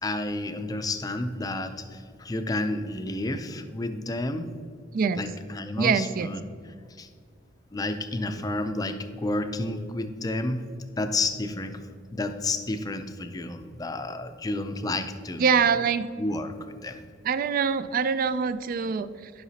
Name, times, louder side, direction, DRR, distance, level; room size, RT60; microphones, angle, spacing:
voice 1, 0.0-4.6 5.2-6.4 7.0-7.1 7.7-10.7 11.0-11.8 12.1-15.5 16.2-17.0, left 2 dB, 20° left, 8 dB, 0.4 m, -31 dB
voice 2, 5.8-6.3 15.4-16.1 17.2-19.3, right 6 dB, 50° right, 14 dB, 0.3 m, -24 dB
11.0 x 5.8 x 2.8 m, 2.1 s
head